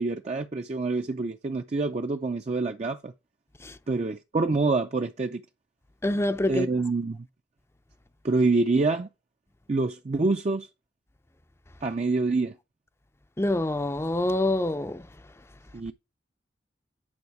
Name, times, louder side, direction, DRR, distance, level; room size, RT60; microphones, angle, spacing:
voice 1, 0.0-3.1 3.9-5.4 6.5-7.3 8.2-9.1 9.7-10.7 11.8-12.6 15.7-15.9, right 3 dB, 40° right, 0.5 m, -26 dB
voice 2, 6.0-6.7 13.4-15.1, left 1 dB, 15° left, 0.5 m, -26 dB
9.7 x 4.8 x 4.7 m
head